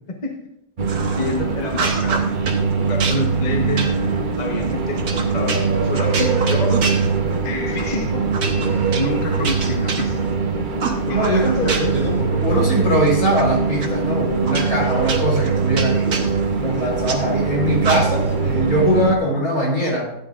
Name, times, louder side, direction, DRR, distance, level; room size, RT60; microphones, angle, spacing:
sound 1, 0.8-19.2, right 5 dB, 40° right, 0.8 m, -22 dB
sound 2, 0.9-1.4 1.7-2.6 3.0-7.5 7.8-8.0 8.3-10.4 10.8-12.1 12.4-13.4 13.8-13.9 14.5-17.2 17.8-18.4, right 4 dB, 60° right, 1.6 m, -28 dB
voice 1, 1.1-2.4 2.8-4.0 4.4-6.8 7.4-8.2 9.0-10.3 11.1-12.0, left 2 dB, 30° left, 2 dB, 1.1 m, -28 dB
voice 2, 11.1-16.1 16.6-20.2, equal, 65° left, -3 dB, 4.8 m, -21 dB
15.5 x 9.7 x 2.5 m, 0.81 s
omnidirectional pair, 1.7 m